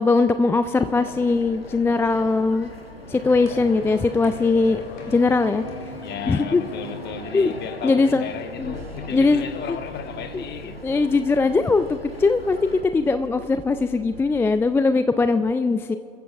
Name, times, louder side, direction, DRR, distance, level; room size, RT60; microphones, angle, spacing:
voice 1, 0.0-2.7 3.1-4.8 5.1-5.6 6.3-6.6 7.3-7.5 7.8-8.3 8.6-8.7 9.1-9.8 10.3-10.4 10.8-16.0, left 3 dB, 10° left, 0.3 m, -20 dB
sound 1, 0.7-12.8, left 1 dB, 90° left, 1.0 m, -41 dB
sound 2, 3.2-10.5, left 3 dB, 55° left, 2.9 m, -40 dB
voice 2, 6.0-11.3, left 7 dB, 35° left, 1.3 m, -35 dB
sound 3, 8.6-14.6, left 1 dB, 85° right, 2.1 m, -43 dB
28.0 x 15.0 x 2.4 m
figure-of-eight pair, 70°, 29 cm